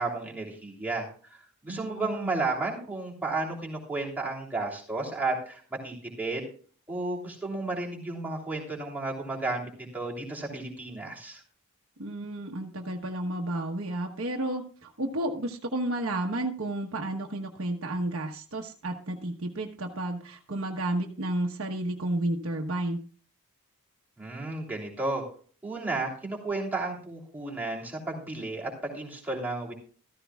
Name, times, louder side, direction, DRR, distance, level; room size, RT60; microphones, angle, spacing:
voice 1, 0.0-6.5 6.9-11.4 24.2-25.2 25.6-29.7, right 3 dB, 10° right, -3 dB, 3.1 m, -33 dB
voice 2, 1.7-2.4 12.0-23.0, right 1 dB, 65° right, 2 dB, 1.1 m, -32 dB
14.5 x 14.0 x 2.4 m, 0.43 s
head